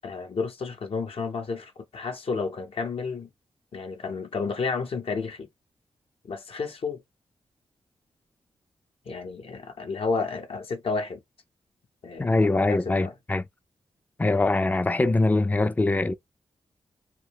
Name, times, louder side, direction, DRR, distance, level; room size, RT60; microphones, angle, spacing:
voice 1, 0.0-3.3 3.7-5.5 6.2-7.0 9.1-11.2 12.0-13.1, left 4 dB, 60° left, 0.7 m, -31 dB
voice 2, 12.2-13.4 14.2-16.1, left 2 dB, 15° left, 0.4 m, -23 dB
2.2 x 2.1 x 3.3 m
supercardioid pair, 45°, 11 cm